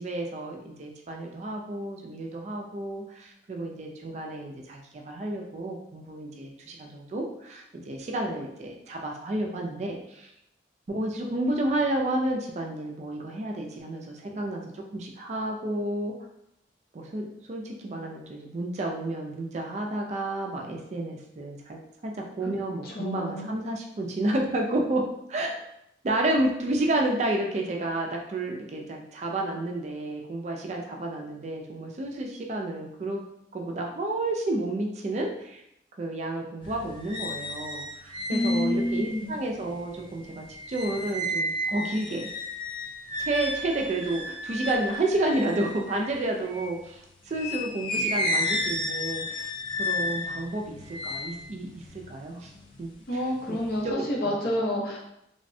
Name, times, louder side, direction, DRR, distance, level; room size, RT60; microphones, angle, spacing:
voice 1, 0.0-10.3 10.9-16.1 16.9-25.0 25.3-25.6 26.0-33.2 33.5-35.6 36.0-42.3 43.2-47.0 47.3-49.5 49.8-52.5 52.8-52.9 53.5-54.3, right 1 dB, 40° right, 1 dB, 0.3 m, -31 dB
voice 2, 22.8-23.5 38.3-39.4 53.1-55.0, left 1 dB, 55° left, -3 dB, 0.8 m, -28 dB
sound 1, 36.6-46.8 47.3-52.8 53.2-53.8, left 1 dB, 30° left, 0.4 m, -33 dB
3.3 x 2.1 x 2.6 m, 0.79 s
head